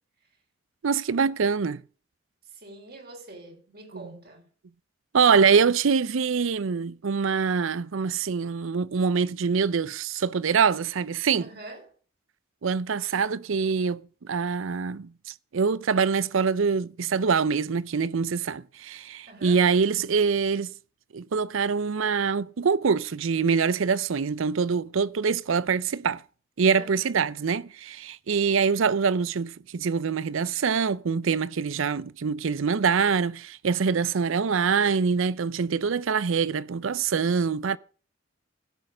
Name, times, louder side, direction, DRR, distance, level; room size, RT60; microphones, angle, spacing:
voice 1, 0.8-1.8 5.1-11.5 12.6-20.7 21.1-26.2 26.6-37.8, right 5 dB, 70° right, 0.5 m, -24 dB
voice 2, 2.4-4.5 11.4-11.9 19.3-19.6 26.7-27.1, right 2 dB, 45° right, 3.2 m, -45 dB
16.0 x 6.5 x 5.1 m
head